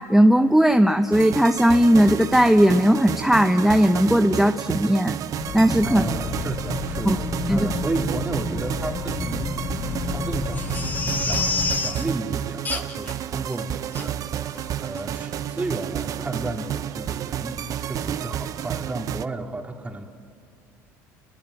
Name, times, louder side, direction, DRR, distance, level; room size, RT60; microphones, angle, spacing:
voice 1, 0.1-5.2 5.5-6.0 7.0-7.2 7.5-7.7, equal, 5° right, 6 dB, 1.0 m, -17 dB
sound 1, 1.1-19.3, right 10 dB, 50° right, 0.8 m, -31 dB
sound 2, 5.4-11.7, left 5 dB, 45° left, 4.1 m, -31 dB
voice 2, 5.8-10.7 11.2-14.5 14.8-20.0, right 2 dB, 20° right, 2 dB, 3.4 m, -32 dB
Crying sobbing, 10.5-12.0 12.6-13.1 13.5-13.6 13.9-14.1 14.5-14.7 15.0-15.1, left 4 dB, 25° left, 1.9 m, -28 dB
29.5 x 22.5 x 8.9 m, 2.4 s
supercardioid pair, 85°, 7 cm